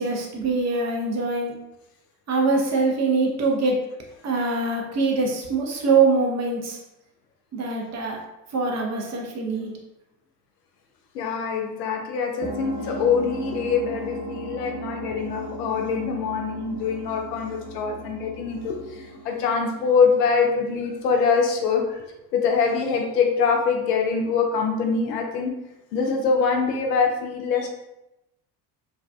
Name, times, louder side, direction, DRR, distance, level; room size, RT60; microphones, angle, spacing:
voice 1, 0.0-1.5 2.3-4.0 4.2-6.8 7.5-8.2 8.5-9.8, right 3 dB, 35° right, 0 dB, 0.7 m, -23 dB
voice 2, 11.1-22.0 22.3-25.5 25.9-27.7, left 5 dB, 75° left, 2 dB, 0.6 m, -24 dB
sound 1, 12.4-20.5, right 1 dB, 25° left, 0.9 m, -36 dB
2.5 x 2.2 x 2.2 m, 0.92 s
figure-of-eight pair, 50°, 49 cm